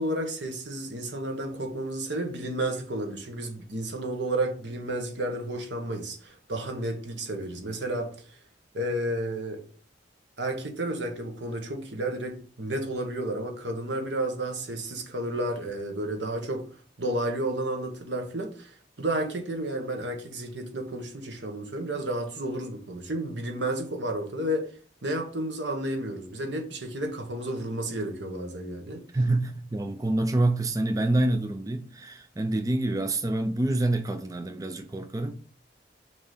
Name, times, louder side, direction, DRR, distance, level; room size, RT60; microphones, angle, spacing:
voice 1, 0.0-8.4 8.7-9.6 10.4-16.6 17.0-24.7 25.0-29.0, right 1 dB, 90° right, 1.3 m, -31 dB
voice 2, 29.1-35.3, right 2 dB, 20° right, 0.4 m, -27 dB
6.5 x 3.0 x 5.4 m
head